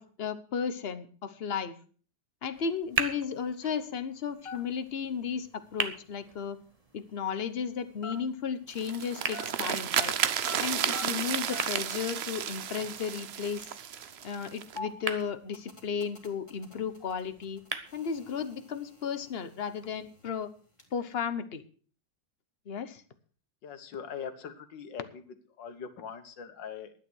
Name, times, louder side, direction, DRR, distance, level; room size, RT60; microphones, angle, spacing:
voice 1, 0.0-1.8 2.4-6.6 6.9-10.1 10.6-13.6 14.2-17.6 17.9-20.5 20.9-21.6 22.7-23.0, left 6 dB, 40° left, 11 dB, 1.0 m, -34 dB
sound 1, 2.5-18.5, right 3 dB, 25° right, 0.9 m, -41 dB
sound 2, 4.2-9.0 9.3-11.9 12.1-12.2 12.4-12.7 13.3-20.9, left 3 dB, 15° left, 2.5 m, -46 dB
sound 3, 8.7-14.8, right 9 dB, 70° right, 0.6 m, -32 dB
voice 2, 23.6-25.2 25.6-26.9, left 7 dB, 85° left, 9 dB, 2.0 m, -41 dB
11.5 x 9.7 x 6.2 m, 0.42 s
omnidirectional pair, 1.9 m